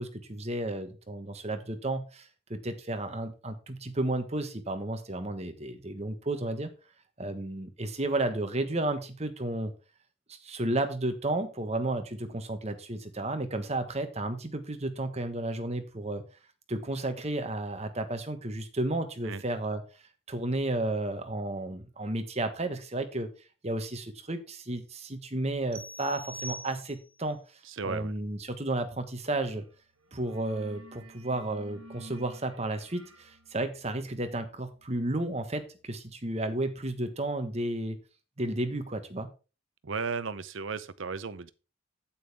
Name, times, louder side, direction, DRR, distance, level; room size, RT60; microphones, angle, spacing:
voice 1, 0.0-6.7 7.2-9.7 10.3-16.2 16.7-19.8 20.3-23.3 23.6-27.4 27.8-29.6 30.1-38.0 38.4-39.3, right 2 dB, 30° right, 1.3 m, -32 dB
sound 1, 25.7-27.3, right 1 dB, 45° right, 1.6 m, -43 dB
voice 2, 27.6-28.1 39.8-41.5, right 5 dB, 65° right, 0.7 m, -35 dB
sound 2, 29.4-29.7 30.0-36.6, right 1 dB, 85° right, 1.7 m, -53 dB
8.9 x 8.8 x 3.5 m
head